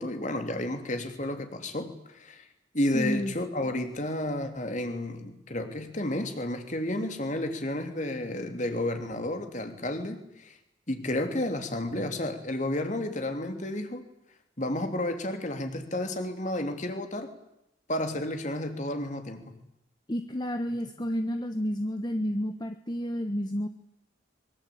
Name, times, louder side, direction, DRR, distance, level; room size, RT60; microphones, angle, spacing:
voice 1, 0.0-2.5 2.7-10.6 10.9-14.0 14.6-17.3 17.9-19.6, left 1 dB, 40° left, 6 dB, 3.3 m, -31 dB
voice 2, 2.9-3.3 20.1-23.7, equal, 20° left, 8 dB, 1.2 m, -30 dB
24.5 x 23.5 x 8.7 m, 0.84 s
head